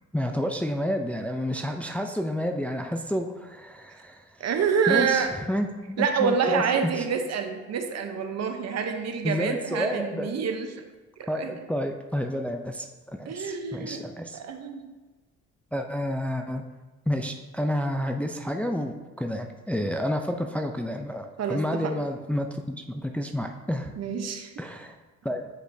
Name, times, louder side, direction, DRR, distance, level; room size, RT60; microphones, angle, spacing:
voice 1, 0.1-4.2 4.9-7.0 9.2-10.3 11.3-14.4 15.7-16.6 17.1-23.9 24.6-25.0 25.2-25.4, equal, 5° left, 4 dB, 0.4 m, -30 dB
voice 2, 4.4-5.4 6.0-10.7 11.2-11.5 13.2-14.0 14.3-15.0 21.4-21.9 24.0-24.5, right 6 dB, 60° right, 5 dB, 0.8 m, -27 dB
8.6 x 5.0 x 2.7 m, 1.2 s
cardioid pair, 90°, 30 cm